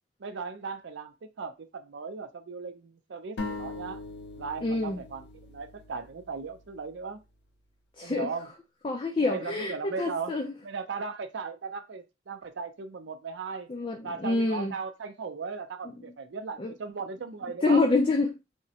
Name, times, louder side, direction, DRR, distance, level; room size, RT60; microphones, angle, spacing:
voice 1, 0.2-4.0 4.4-5.2 5.5-7.2 8.0-8.5 9.2-10.3 10.6-13.7 14.0-17.8, right 5 dB, 85° right, 0.5 m, -37 dB
sound 1, 3.4-7.0, left 2 dB, 80° left, 0.6 m, -41 dB
voice 2, 4.6-5.0 8.0-8.3 8.8-10.5 13.7-14.7 16.6-16.7 17.6-18.4, left 3 dB, 30° left, 0.4 m, -27 dB
3.5 x 2.0 x 2.8 m
head